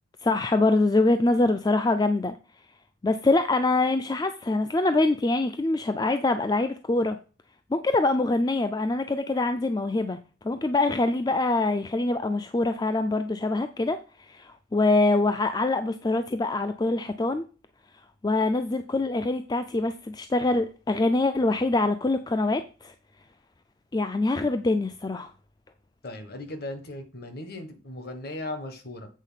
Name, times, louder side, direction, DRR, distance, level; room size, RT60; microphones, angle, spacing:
voice 1, 0.2-2.4 3.0-7.2 7.7-10.2 10.4-17.5 18.2-22.9 23.9-25.3, left 2 dB, 20° left, 0.3 m, -24 dB
voice 2, 26.0-29.1, left 1 dB, 50° left, 1.3 m, -37 dB
8.2 x 4.0 x 5.6 m
head